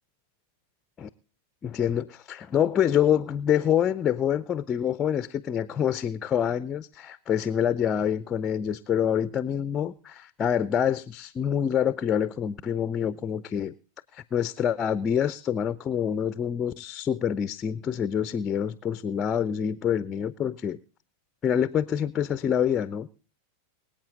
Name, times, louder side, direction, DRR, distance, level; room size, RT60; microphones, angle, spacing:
voice 1, 1.6-13.7 14.1-20.8 21.4-23.1, left 9 dB, 25° left, 0.5 m, -26 dB
24.0 x 8.7 x 3.8 m
figure-of-eight pair, 90°, 0 cm